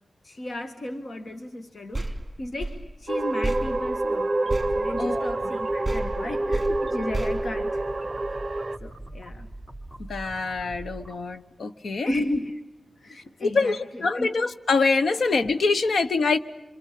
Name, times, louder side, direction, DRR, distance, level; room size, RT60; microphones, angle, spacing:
voice 1, 0.2-7.9 8.8-9.5 12.0-12.6 13.0-14.4, left 1 dB, 55° left, 6 dB, 1.7 m, -34 dB
sound 1, 1.9-5.6 5.8-8.3, right 2 dB, 20° right, 2.6 m, -33 dB
sound 2, 3.1-8.8, right 2 dB, 40° right, 1.0 m, -27 dB
sound 3, 4.0-11.2, right 1 dB, 20° left, 3.2 m, -42 dB
voice 2, 5.0-5.5 10.1-12.1 13.4-16.4, left 4 dB, 85° left, 10 dB, 1.2 m, -25 dB
26.5 x 26.5 x 8.5 m, 0.97 s
wide cardioid pair, 135°, 0 cm